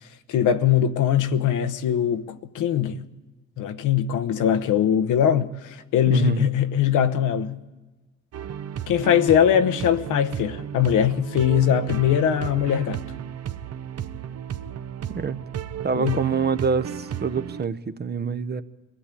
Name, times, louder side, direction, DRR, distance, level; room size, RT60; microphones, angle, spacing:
voice 1, 0.3-3.0 3.6-7.6 8.9-13.0 15.9-16.2, left 9 dB, 85° left, 1.0 m, -21 dB
voice 2, 6.1-6.5 15.1-15.4 15.8-18.6, right 5 dB, 35° right, 0.9 m, -25 dB
sound 1, 8.3-17.6, right 9 dB, 55° right, 0.8 m, -34 dB
22.0 x 15.5 x 8.4 m
cardioid pair, 95°, 30 cm